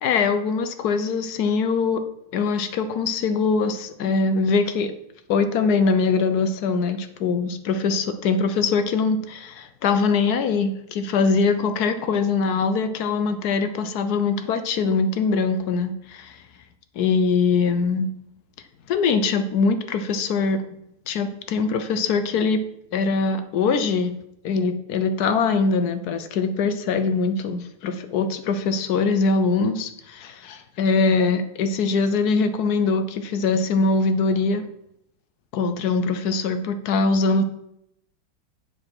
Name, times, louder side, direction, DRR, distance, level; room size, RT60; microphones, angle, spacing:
voice 1, 0.0-2.0 2.3-4.9 5.3-16.4 17.0-18.1 18.9-20.6 21.1-22.6 22.9-24.1 24.4-34.6 35.5-37.4, left 4 dB, 65° left, 10 dB, 1.2 m, -22 dB
7.3 x 5.3 x 6.0 m, 0.79 s
omnidirectional pair, 1.9 m